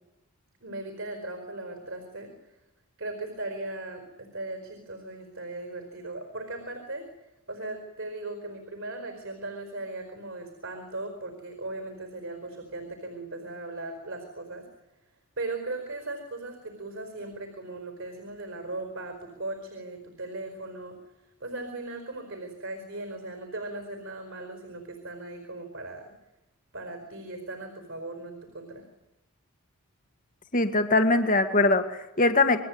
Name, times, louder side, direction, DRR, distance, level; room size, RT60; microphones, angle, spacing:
voice 1, 0.6-2.6 3.0-7.1 7.5-14.7 15.4-21.0 21.4-26.1 26.7-28.9, right 2 dB, 60° right, 6 dB, 4.8 m, -38 dB
voice 2, 30.5-32.6, left 2 dB, 35° left, 8 dB, 2.0 m, -22 dB
28.5 x 22.5 x 8.8 m, 0.94 s
head